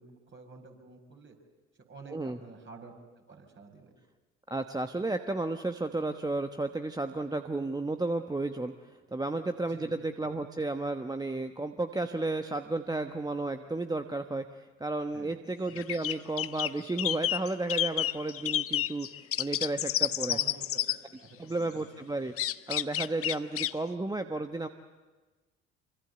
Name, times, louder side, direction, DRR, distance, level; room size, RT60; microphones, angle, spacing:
voice 1, 0.0-1.4 1.9-3.9 9.6-9.9 15.1-15.4 20.3-20.7 21.2-22.0, right 4 dB, 35° right, 3 dB, 5.3 m, -50 dB
voice 2, 4.5-20.4 20.9-21.0 21.4-22.3 22.7-24.7, right 2 dB, 10° right, 8 dB, 1.1 m, -33 dB
sound 1, 15.7-21.0 22.4-23.7, left 12 dB, 40° left, 0.8 m, -30 dB
26.0 x 24.5 x 8.0 m, 1.3 s
figure-of-eight pair, 55°, 34 cm